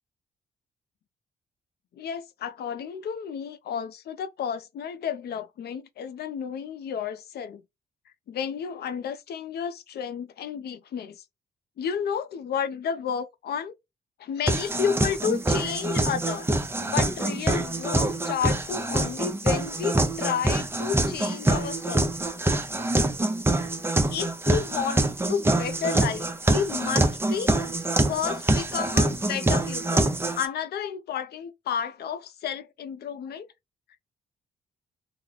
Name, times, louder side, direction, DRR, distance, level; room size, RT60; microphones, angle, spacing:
voice 1, 1.9-7.6 8.3-11.2 11.8-13.7 14.2-16.5 16.8-22.1 24.1-27.6 28.1-33.5, left 7 dB, 65° left, 0.4 m, -31 dB
sound 1, 14.5-30.5, right 2 dB, 15° right, 0.6 m, -25 dB
2.9 x 2.1 x 3.7 m
cardioid pair, 110°, 18 cm